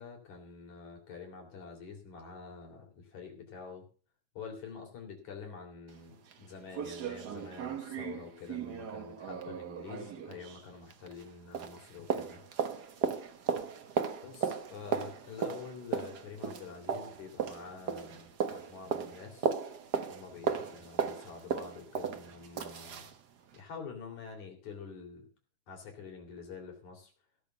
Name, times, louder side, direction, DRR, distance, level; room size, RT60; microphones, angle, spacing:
voice 1, 0.0-3.9 4.3-12.5 14.2-19.6 20.1-23.1 23.5-25.3 25.7-27.1, left 5 dB, 70° left, 2 dB, 4.6 m, -47 dB
sound 1, 5.9-6.0 6.3-6.4 6.7-11.3 11.5-23.2 23.5-23.6, right 6 dB, 55° right, 1.1 m, -36 dB
16.5 x 7.1 x 6.8 m, 0.38 s
omnidirectional pair, 3.4 m